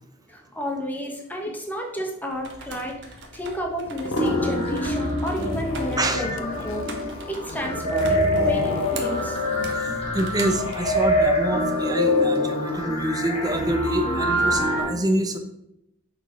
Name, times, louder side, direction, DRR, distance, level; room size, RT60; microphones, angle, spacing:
voice 1, 0.3-6.8 7.2-9.4, equal, 10° left, 1 dB, 1.1 m, -31 dB
sound 1, 2.3-10.9, right 4 dB, 60° right, 1.1 m, -42 dB
sound 2, 3.9-5.1 5.4-9.7, left 3 dB, 65° left, 0.6 m, -35 dB
sound 3, 4.2-14.8, left 1 dB, 30° left, 1.6 m, -25 dB
voice 2, 6.0-6.4 9.8-9.9 10.1-15.4, right 1 dB, 20° right, 6 dB, 0.7 m, -26 dB
6.7 x 4.2 x 4.6 m, 0.83 s
head